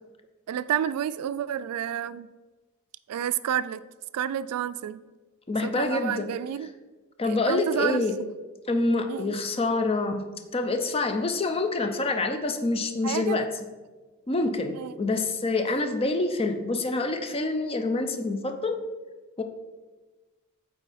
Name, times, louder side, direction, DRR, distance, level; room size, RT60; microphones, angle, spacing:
voice 1, 0.5-2.3 3.1-3.8 4.1-5.0 5.6-6.7 7.2-8.3 9.1-9.4 13.0-13.5 14.7-14.9, right 9 dB, 85° right, 0.3 m, -30 dB
voice 2, 5.5-6.4 7.2-8.2 8.7-10.2 10.5-13.5 14.3-18.8 19.4-19.5, left 2 dB, 25° left, 0.5 m, -26 dB
8.2 x 4.0 x 4.2 m
head